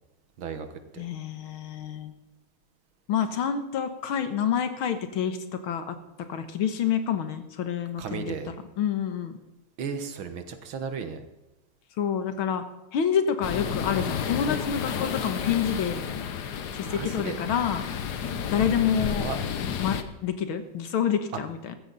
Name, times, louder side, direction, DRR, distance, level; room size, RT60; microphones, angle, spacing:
voice 1, 0.4-1.0 8.0-8.5 9.8-11.2 16.8-17.4 19.0-19.4, right 6 dB, 75° right, 8 dB, 2.1 m, -35 dB
voice 2, 1.0-2.1 3.1-5.4 5.6-6.0 6.3-8.4 8.8-9.4 12.0-12.6 12.9-16.2 16.7-17.9 18.5-19.3 19.8-21.8, left 8 dB, 80° left, 9 dB, 2.1 m, -28 dB
sound 1, 13.4-20.0, left 7 dB, 55° left, 1.4 m, -31 dB
15.0 x 13.5 x 4.1 m, 1.0 s
omnidirectional pair, 2.3 m